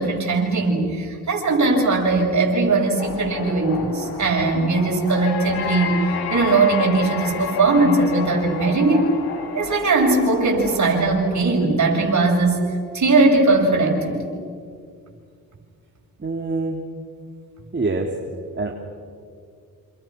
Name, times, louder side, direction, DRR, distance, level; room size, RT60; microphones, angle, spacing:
voice 1, 0.0-9.1 9.5-14.4, right 3 dB, 45° right, 0 dB, 7.8 m, -19 dB
sound 1, 3.0-11.4, left 5 dB, 70° left, 5.2 m, -31 dB
voice 2, 16.2-16.8 17.7-18.1 18.6-18.7, right 3 dB, 30° right, 1 dB, 2.9 m, -24 dB
28.5 x 28.0 x 6.4 m, 2.3 s
supercardioid pair, 65°, 39 cm